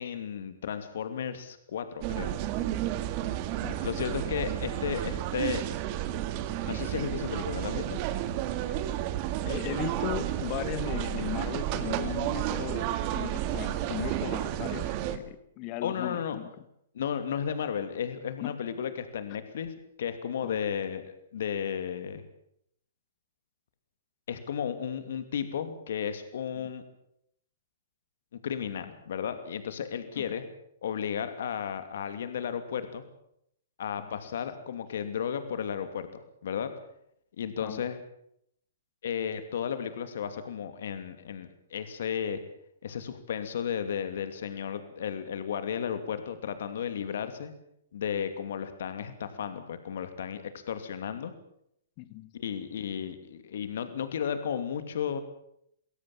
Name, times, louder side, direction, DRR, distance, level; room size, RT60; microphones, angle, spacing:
voice 1, 0.0-2.4 3.8-5.7 6.6-8.0 15.8-16.4 16.9-22.2 24.3-26.8 28.4-30.4 30.8-33.0 33.8-36.7 37.4-38.0 39.0-42.4 42.8-47.5 47.9-51.3 52.3-55.2, left 8 dB, 65° left, 9 dB, 2.7 m, -34 dB
sound 1, 2.0-15.2, right 12 dB, 40° right, 1.9 m, -32 dB
voice 2, 3.6-4.1 8.7-8.8 9.4-16.5 18.4-18.5 20.4-20.6 26.6-26.7 30.2-30.3 34.0-34.1 37.6-37.8 52.0-52.3, left 15 dB, 40° left, 13 dB, 1.9 m, -37 dB
23.5 x 17.0 x 7.4 m, 0.74 s
hypercardioid pair, 125°, 0 cm